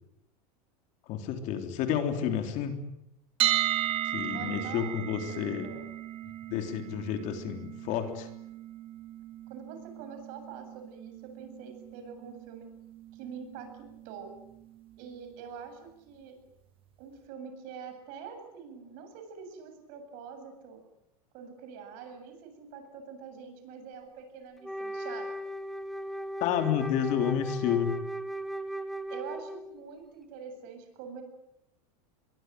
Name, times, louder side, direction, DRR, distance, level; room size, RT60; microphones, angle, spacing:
voice 1, 1.1-2.8 4.0-5.7 6.5-8.3 26.4-28.0, left 9 dB, 40° left, 6 dB, 3.5 m, -30 dB
sound 1, 3.4-15.3, right 12 dB, 30° right, 1.5 m, -36 dB
voice 2, 4.3-5.9 9.5-12.7 13.1-14.3 15.0-16.4 17.0-20.8 21.3-25.4 29.1-31.2, right 6 dB, 45° right, 7 dB, 8.0 m, -45 dB
Wind instrument woodwind instrument, 24.6-29.8, right 1 dB, ahead, 1.2 m, -37 dB
25.5 x 23.0 x 9.3 m, 0.84 s
supercardioid pair, 155°, 19 cm